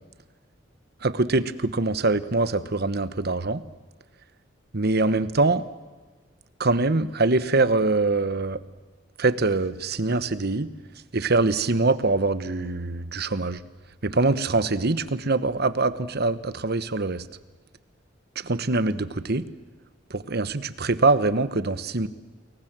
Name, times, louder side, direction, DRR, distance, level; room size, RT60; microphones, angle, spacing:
voice 1, 1.0-3.6 4.7-5.7 6.6-8.6 9.2-10.7 11.1-13.6 14.0-17.3 18.3-19.4 20.1-22.1, right 3 dB, 55° right, 13 dB, 1.2 m, -23 dB
29.5 x 22.5 x 7.6 m, 1.4 s
head